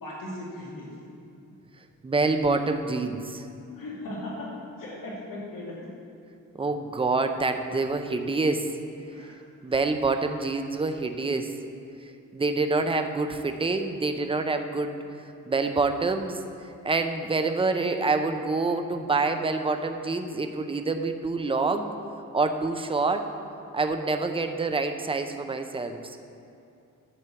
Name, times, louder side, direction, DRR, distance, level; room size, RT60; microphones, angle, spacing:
voice 1, 0.0-0.9 3.7-4.5 4.8-5.7 9.1-9.4, left 1 dB, 80° left, -5 dB, 2.3 m, -37 dB
voice 2, 2.0-3.4 6.5-8.7 9.6-11.5 12.3-15.0 15.5-16.4 16.8-21.9 22.3-23.3 23.7-26.2, right 3 dB, 15° right, 6 dB, 0.5 m, -26 dB
11.0 x 4.4 x 7.6 m, 2.7 s
wide cardioid pair, 140°, 33 cm